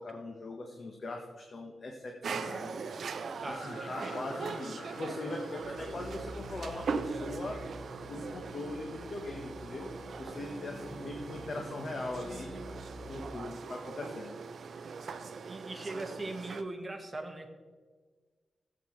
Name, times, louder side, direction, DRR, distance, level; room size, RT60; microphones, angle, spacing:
voice 1, 0.0-2.9 3.5-7.6 8.1-9.9 10.2-12.5 13.1-14.4, left 2 dB, 50° left, 2 dB, 1.2 m, -40 dB
sound 1, 2.2-16.6, right 5 dB, 65° right, 0.6 m, -41 dB
voice 2, 3.4-4.1 15.5-17.5, right 2 dB, 25° right, 3 dB, 1.5 m, -40 dB
sound 2, 3.5-8.0, left 3 dB, 65° left, 2.6 m, -50 dB
sound 3, 5.6-13.3, equal, 10° left, 3.3 m, -47 dB
14.0 x 8.4 x 3.2 m, 1.5 s
cardioid pair, 75°, 0 cm